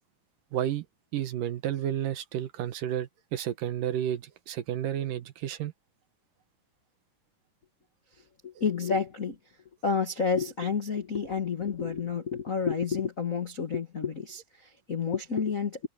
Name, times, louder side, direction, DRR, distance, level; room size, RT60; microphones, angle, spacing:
voice 1, 0.5-0.9 1.1-5.7, right 11 dB, 70° right, 2.7 m, -31 dB
voice 2, 8.4-9.4 9.8-15.9, left 5 dB, 45° left, 1.0 m, -30 dB
omnidirectional pair, 4.1 m